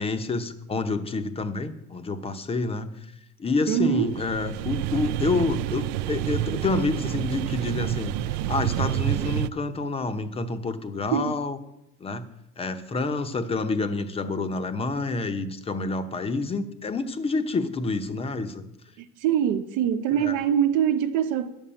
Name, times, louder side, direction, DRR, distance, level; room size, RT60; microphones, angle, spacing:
voice 1, 0.0-2.9 3.4-11.6 12.0-12.2 12.6-18.6 20.2-20.3, left 3 dB, 15° left, 0.8 m, -28 dB
voice 2, 3.7-4.2 11.1-11.4 19.0-21.5, right 9 dB, 60° right, 1.0 m, -24 dB
sound 1, 3.9-9.5, right 13 dB, 80° right, 0.6 m, -28 dB
10.5 x 7.1 x 8.8 m
cardioid pair, 150°, 36 cm